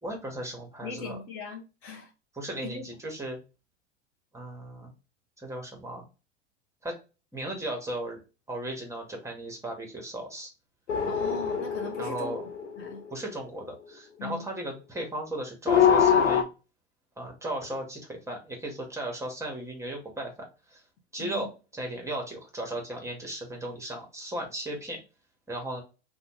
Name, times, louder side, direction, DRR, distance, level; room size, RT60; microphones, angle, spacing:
voice 1, 0.0-1.2 2.3-3.4 4.3-4.9 5.4-6.0 6.8-6.9 7.3-8.2 8.5-10.5 12.0-12.4 13.1-16.5 17.2-20.3 20.7-20.8 21.1-25.0 25.5-25.8, right 1 dB, 10° right, 1.0 m, -36 dB
voice 2, 0.8-2.1 2.6-2.9 11.0-12.3 12.8-13.0 14.2-14.5 21.2-21.5, left 4 dB, 40° left, 0.7 m, -39 dB
sound 1, 10.9-13.4 15.7-16.4, left 7 dB, 85° left, 0.6 m, -24 dB
2.6 x 2.3 x 3.0 m
figure-of-eight pair, 85°, 35 cm